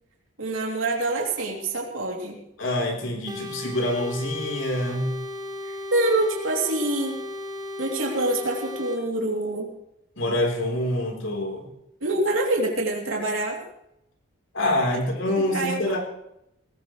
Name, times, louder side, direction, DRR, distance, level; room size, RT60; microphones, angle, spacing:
voice 1, 0.4-2.4 5.6-7.2 7.8-9.7 12.0-13.6 14.9-15.0 15.4-16.0, right 2 dB, 80° right, 0 dB, 3.1 m, -26 dB
voice 2, 2.6-5.1 10.2-11.7 14.5-16.0, left 1 dB, 70° left, 1 dB, 3.9 m, -26 dB
sound 1, 3.3-9.0, left 1 dB, 20° right, 2.9 m, -35 dB
19.0 x 17.5 x 3.2 m, 0.82 s
head